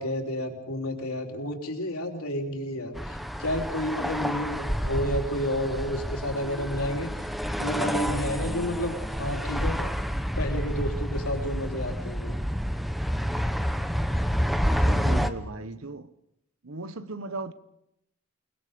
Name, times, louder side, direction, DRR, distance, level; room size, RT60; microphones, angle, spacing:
voice 1, 0.0-7.1 7.6-9.9 10.4-12.4, left 1 dB, 85° left, 3.6 m, -31 dB
sound 1, 3.0-15.3, equal, ahead, 0.9 m, -29 dB
voice 2, 14.6-16.1 16.6-17.5, right 3 dB, 70° right, 1.2 m, -37 dB
29.0 x 20.5 x 5.2 m
head